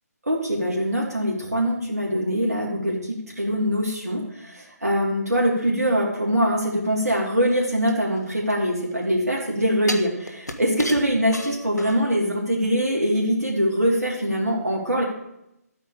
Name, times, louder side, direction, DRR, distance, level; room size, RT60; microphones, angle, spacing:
voice 1, 0.2-3.0 3.3-15.0, equal, 70° right, -2 dB, 3.0 m, -23 dB
sound 1, 7.9-9.0 9.9-12.2 12.6-12.7, left 1 dB, 75° left, 1.4 m, -34 dB
11.5 x 8.8 x 4.9 m, 0.83 s
figure-of-eight pair, 145°, 9 cm